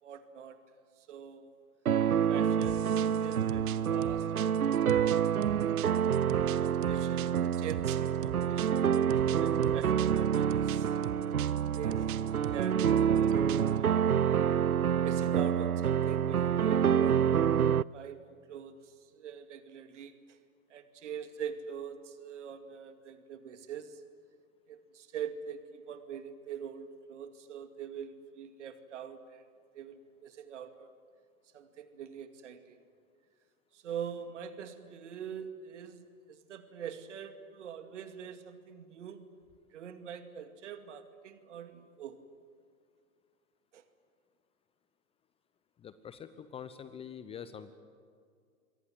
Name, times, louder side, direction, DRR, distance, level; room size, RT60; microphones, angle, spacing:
voice 1, 0.0-0.6 1.0-1.5 2.3-5.4 6.3-10.9 11.4-14.5 15.0-17.5 17.9-20.1 20.7-24.0 24.7-29.4 29.7-30.9 31.5-32.8 33.7-39.2 39.7-42.2 43.7-43.8, right 8 dB, 55° right, 9 dB, 2.4 m, -44 dB
sound 1, 1.9-17.8, right 8 dB, 85° right, 0.6 m, -27 dB
sound 2, 2.6-13.8, right 15 dB, 35° right, 0.9 m, -43 dB
voice 2, 45.8-47.7, left 8 dB, 15° left, 13 dB, 0.8 m, -45 dB
27.5 x 23.5 x 7.7 m, 2.2 s
figure-of-eight pair, 105°, 42 cm